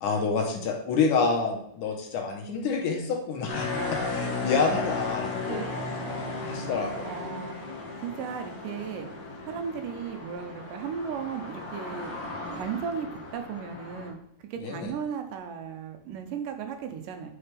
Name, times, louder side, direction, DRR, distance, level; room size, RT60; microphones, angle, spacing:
voice 1, 0.0-5.6 6.4-7.1 14.6-14.9, left 5 dB, 75° left, 1 dB, 2.4 m, -28 dB
sound 1, 3.5-14.1, left 3 dB, 45° left, 1.3 m, -35 dB
voice 2, 3.7-4.6 5.5-5.9 6.6-6.8 7.0-9.1 9.5-12.1 12.5-17.3, right 7 dB, 80° right, 6 dB, 2.4 m, -36 dB
8.8 x 4.8 x 3.4 m, 0.70 s
omnidirectional pair, 3.8 m